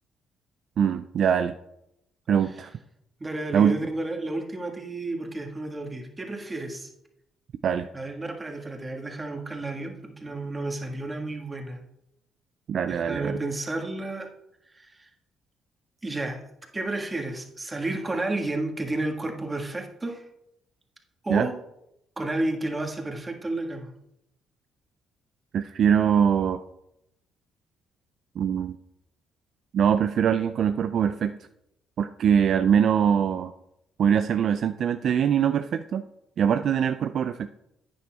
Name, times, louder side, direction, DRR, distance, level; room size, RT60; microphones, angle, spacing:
voice 1, 0.8-1.5 2.3-2.7 3.5-3.8 7.6-7.9 12.7-13.4 21.3-21.5 25.5-26.6 28.4-28.8 29.7-31.3 32.0-33.5 34.0-36.0 36.4-37.5, right 8 dB, 60° right, 9 dB, 0.3 m, -23 dB
voice 2, 3.2-6.9 7.9-11.8 12.9-14.3 14.7-15.1 16.0-16.4 16.7-20.2 21.2-21.5 22.2-23.9, right 2 dB, 25° right, 3 dB, 1.6 m, -31 dB
10.5 x 9.1 x 2.3 m, 0.82 s
hypercardioid pair, 50°, 0 cm